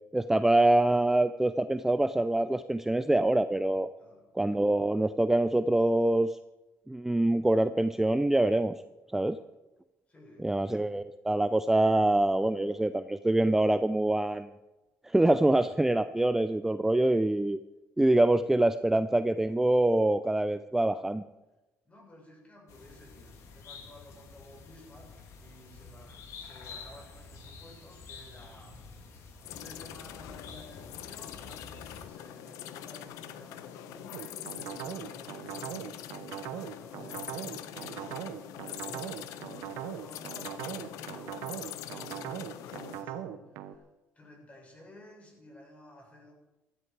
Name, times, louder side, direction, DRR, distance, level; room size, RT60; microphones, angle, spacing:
voice 1, 0.1-3.9 4.4-6.4 6.9-8.8 9.1-9.4 10.4-14.5 15.0-17.6 18.0-21.2, right 1 dB, 5° right, 12 dB, 0.4 m, -25 dB
voice 2, 4.0-4.3 9.2-9.4 10.1-11.2 21.8-29.2 29.5-43.8 44.1-46.3, left 1 dB, 25° left, -1 dB, 6.8 m, -54 dB
sound 1, 22.7-32.1, left 4 dB, 70° left, 2.7 m, -49 dB
sound 2, 29.4-43.0, left 11 dB, 85° left, 0.9 m, -43 dB
sound 3, 34.1-43.8, right 10 dB, 90° right, 0.9 m, -40 dB
16.0 x 13.0 x 4.6 m, 1.1 s
cardioid pair, 105°, 5 cm